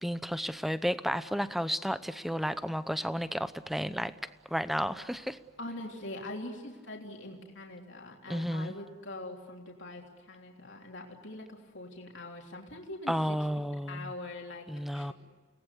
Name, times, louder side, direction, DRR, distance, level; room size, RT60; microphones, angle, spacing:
voice 1, 0.0-4.1 4.5-5.4 8.3-8.7 13.1-14.1 14.7-15.1, equal, ahead, 13 dB, 0.7 m, -32 dB
voice 2, 5.6-13.1 13.6-14.7 14.9-15.1, left 1 dB, 60° left, 0 dB, 3.4 m, -43 dB
30.0 x 19.0 x 8.4 m, 1.5 s
head